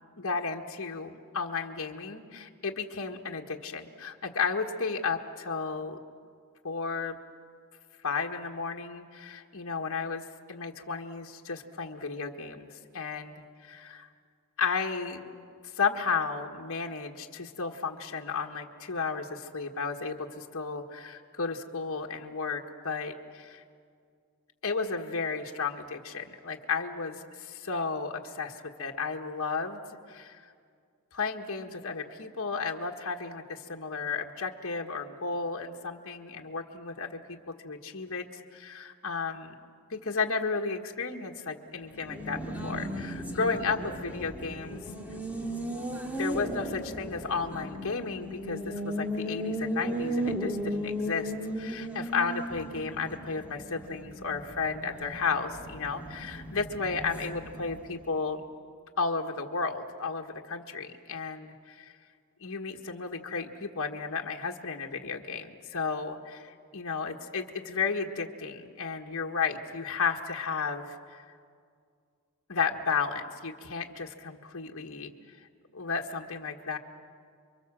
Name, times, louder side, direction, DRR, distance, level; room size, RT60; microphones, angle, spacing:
voice 1, 0.2-6.0 6.6-7.2 8.0-14.1 14.6-15.3 15.7-23.6 24.6-29.8 30.1-30.5 31.1-37.2 37.6-39.5 39.9-44.8 46.1-58.4 59.0-61.9 62.4-71.2 72.5-75.1 75.7-76.8, left 5 dB, 65° left, 2 dB, 1.5 m, -33 dB
Race car auto racing, 41.8-58.1, equal, 5° right, 2.0 m, -36 dB
30.0 x 23.5 x 7.5 m, 2.2 s
head